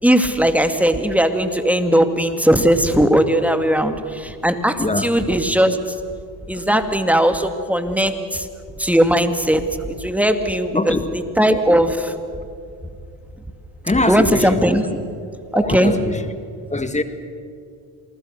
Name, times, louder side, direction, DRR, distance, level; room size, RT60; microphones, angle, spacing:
voice 1, 0.0-5.8 6.5-8.5 8.8-12.1 14.1-14.8 15.5-15.9, equal, 5° right, 7 dB, 2.3 m, -18 dB
voice 2, 4.8-5.1 10.8-11.0 13.8-14.6 15.5-16.2 16.7-17.0, left 2 dB, 15° left, 9 dB, 1.9 m, -22 dB
28.0 x 20.0 x 6.7 m, 2.3 s
hypercardioid pair, 65°, 43 cm